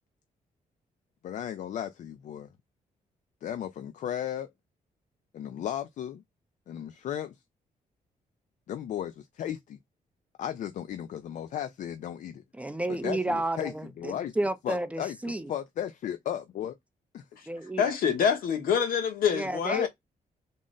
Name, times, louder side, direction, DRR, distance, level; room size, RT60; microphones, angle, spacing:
voice 1, 1.2-2.5 3.4-4.5 5.3-6.2 6.7-7.4 8.7-9.8 10.4-12.4 13.0-13.7 14.0-14.3 14.6-15.2 15.5-16.7 17.1-17.2 19.7-19.9, left 10 dB, 60° left, 0.4 m, -35 dB
voice 2, 12.6-15.5 17.5-17.9 19.3-19.9, right 2 dB, 10° right, 0.4 m, -31 dB
voice 3, 17.8-19.9, left 7 dB, 85° left, 1.1 m, -26 dB
3.8 x 2.1 x 3.7 m
cardioid pair, 140°, 14 cm